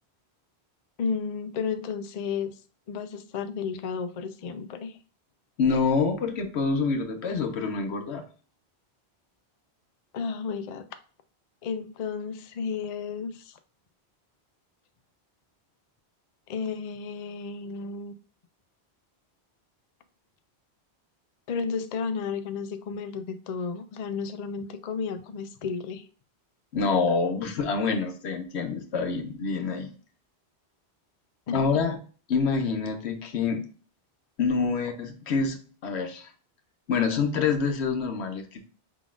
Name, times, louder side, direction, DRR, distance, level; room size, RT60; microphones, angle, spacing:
voice 1, 1.0-2.5 2.9-5.0 10.1-10.9 11.6-13.6 16.5-18.1 21.5-26.1 31.5-31.6, left 5 dB, 55° left, 9 dB, 0.5 m, -32 dB
voice 2, 5.6-8.2 26.7-29.9 31.5-32.0 32.3-33.6 34.4-36.3 36.9-38.7, left 5 dB, 85° left, 6 dB, 1.0 m, -26 dB
4.9 x 3.8 x 2.5 m, 0.39 s
omnidirectional pair, 1.1 m